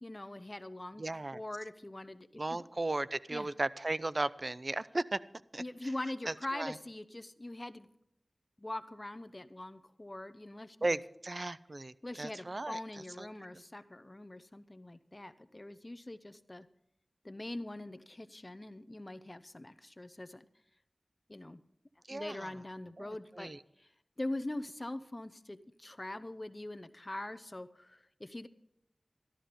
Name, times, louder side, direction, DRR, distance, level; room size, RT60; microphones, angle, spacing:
voice 1, 0.0-1.0 1.3-2.7 3.3-3.5 5.6-7.9 8.6-11.0 12.0-16.7 17.2-20.5 21.3-21.6 22.1-23.5 23.8-23.9 24.2-28.5, left 1 dB, 35° left, 13 dB, 0.8 m, -43 dB
voice 2, 1.0-1.4 2.4-5.2 5.5-5.6 6.3-6.7 10.8-12.8 13.2-13.3 22.1-22.5 23.0-23.6, right 2 dB, 55° right, 17 dB, 0.5 m, -36 dB
13.0 x 12.5 x 5.1 m, 0.78 s
wide cardioid pair, 40°, 0 cm